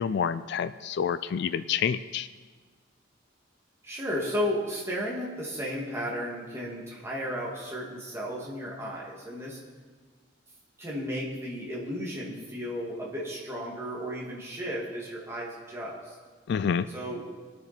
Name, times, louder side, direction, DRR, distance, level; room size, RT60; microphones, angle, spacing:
voice 1, 0.0-2.3 16.5-16.9, left 7 dB, 60° left, 13 dB, 0.3 m, -28 dB
voice 2, 3.8-9.6 10.8-16.1 16.9-17.2, equal, 15° right, -4 dB, 2.4 m, -34 dB
21.0 x 7.0 x 4.4 m, 1.5 s
head